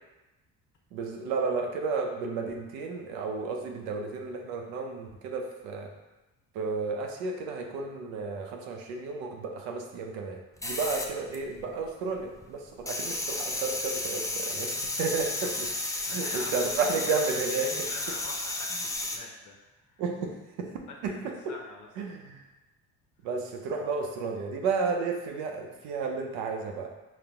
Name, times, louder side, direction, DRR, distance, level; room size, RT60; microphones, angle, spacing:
voice 1, 0.9-5.9 6.5-14.7 15.0-15.7 16.0-17.7 20.0-20.3 20.6-20.7 21.0-21.2 22.0-22.5 23.2-26.9, right 4 dB, 85° right, 2 dB, 0.6 m, -32 dB
sound 1, 10.6-11.9 12.1-19.2, left 2 dB, 10° left, 0.4 m, -33 dB
voice 2, 15.4-16.7 17.0-17.1 17.5-18.7 19.0-20.0 20.9-21.0 21.2-21.9, left 3 dB, 55° left, 0 dB, 0.7 m, -45 dB
4.1 x 2.2 x 3.4 m, 1.0 s
supercardioid pair, 75°, 36 cm